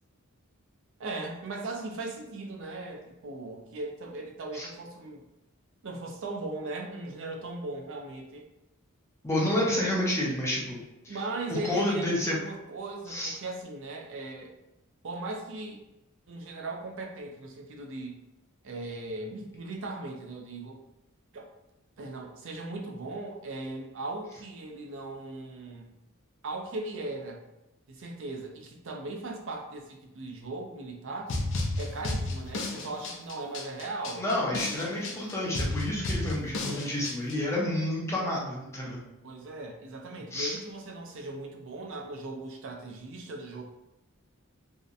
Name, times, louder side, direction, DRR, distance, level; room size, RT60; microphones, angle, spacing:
voice 1, 1.0-5.2 5.8-8.5 11.1-14.5 15.0-15.8 16.3-18.2 18.6-20.8 21.3-21.5 22.0-25.9 26.4-27.4 27.9-31.3 31.8-34.2 39.2-43.6, right 2 dB, 60° right, 1 dB, 0.5 m, -38 dB
voice 2, 9.2-11.2 11.5-12.4 13.1-13.3 34.2-39.0 40.3-40.6, left 1 dB, 10° left, -5 dB, 0.6 m, -29 dB
sound 1, 31.3-37.4, left 2 dB, 60° left, 0.4 m, -33 dB
2.7 x 2.1 x 2.4 m, 0.93 s
head